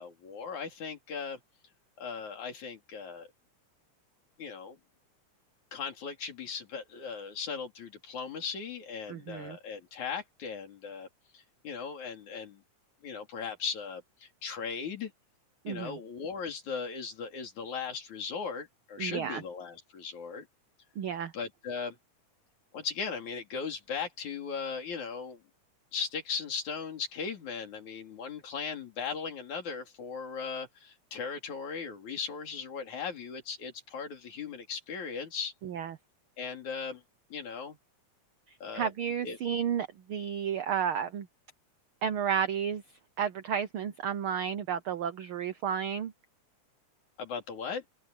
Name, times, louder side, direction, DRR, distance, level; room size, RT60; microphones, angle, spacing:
voice 1, 0.0-1.4 2.0-3.3 4.4-4.8 5.7-11.1 11.3-12.6 13.0-15.1 15.7-20.5 21.3-22.0 22.7-25.4 25.9-35.5 36.4-37.0 37.3-37.8 38.6-38.9 39.2-39.4 47.2-47.8, left 5 dB, 70° left, 4.6 m, -38 dB
voice 2, 9.1-9.6 15.6-16.0 19.0-19.4 21.0-21.3 35.6-36.0 38.7-41.3 42.0-42.8 43.2-46.1, right 8 dB, 75° right, 1.2 m, -32 dB
open air
omnidirectional pair, 3.5 m